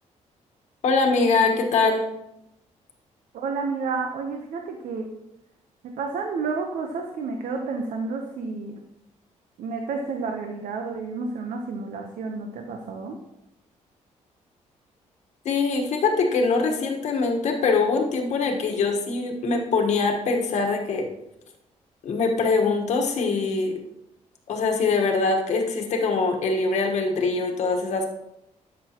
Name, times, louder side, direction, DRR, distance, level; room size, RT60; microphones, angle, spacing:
voice 1, 0.8-2.0 15.4-21.1 22.0-23.8 24.5-28.1, left 4 dB, 65° left, 2 dB, 1.4 m, -23 dB
voice 2, 3.3-5.1 5.8-8.8 9.6-13.2, right 4 dB, 85° right, 3 dB, 0.9 m, -30 dB
12.5 x 6.1 x 3.0 m, 0.85 s
wide cardioid pair, 175°, 13 cm